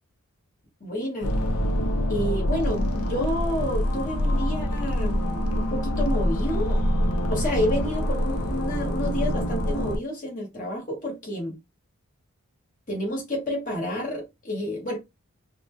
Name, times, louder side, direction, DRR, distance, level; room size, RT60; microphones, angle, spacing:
voice 1, 0.8-1.3 2.1-6.8 7.3-11.5 12.9-15.0, equal, 35° left, 1.2 m, -30 dB
sound 1, 1.2-10.0, equal, 90° left, 0.6 m, -25 dB
3.7 x 2.2 x 3.1 m
head